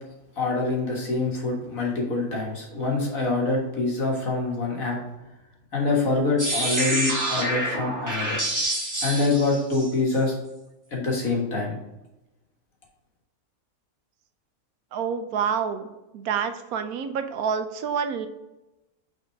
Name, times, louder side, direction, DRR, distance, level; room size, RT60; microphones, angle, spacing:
voice 1, 0.4-5.0 5.7-8.4 9.0-10.4 10.9-11.8, left 3 dB, 65° left, -1 dB, 2.0 m, -25 dB
sound 1, 6.4-10.1, right 1 dB, 15° right, 1.3 m, -27 dB
voice 2, 14.9-15.9 16.1-18.3, right 7 dB, 80° right, 9 dB, 1.1 m, -27 dB
6.2 x 4.0 x 4.6 m, 0.97 s
omnidirectional pair, 1.6 m